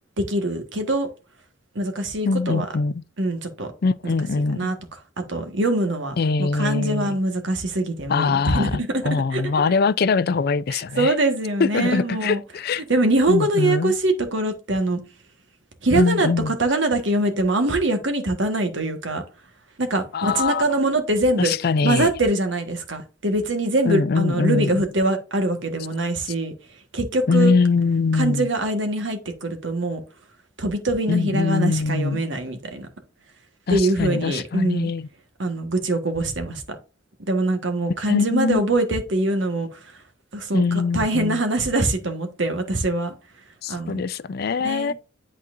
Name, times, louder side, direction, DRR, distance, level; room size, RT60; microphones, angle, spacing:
voice 1, 0.2-1.1 1.7-2.7 3.2-3.7 4.0-4.1 4.5-4.7 5.3-9.0 9.3-9.7 10.7-12.4 12.8-15.0 15.8-19.2 19.8-21.5 21.8-26.5 26.9-27.5 28.1-30.0 30.6-32.9 33.7-34.9 35.4-36.6 37.3-40.0 40.3-43.1 43.7-44.0 44.6-44.9, right 2 dB, 65° right, 1.4 m, -23 dB
voice 2, 2.2-3.0 3.8-4.7 6.2-7.2 8.1-11.1 11.6-12.8 13.3-13.9 15.9-16.5 20.1-20.6 21.4-22.1 23.9-24.8 27.3-28.5 31.1-32.2 33.7-35.1 38.1-38.6 40.5-41.4 43.6-44.9, left 4 dB, 50° left, 0.4 m, -22 dB
10.5 x 4.2 x 2.5 m
head